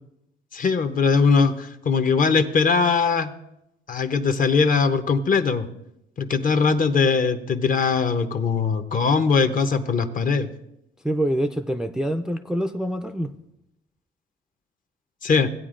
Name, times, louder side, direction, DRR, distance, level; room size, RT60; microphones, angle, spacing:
voice 1, 0.5-3.3 3.9-5.7 6.2-10.5 15.2-15.5, left 5 dB, 45° left, 9 dB, 0.8 m, -21 dB
voice 2, 11.0-13.3, right 1 dB, 5° right, 6 dB, 0.4 m, -25 dB
16.5 x 8.8 x 2.5 m, 0.84 s
cardioid pair, 90°, 20 cm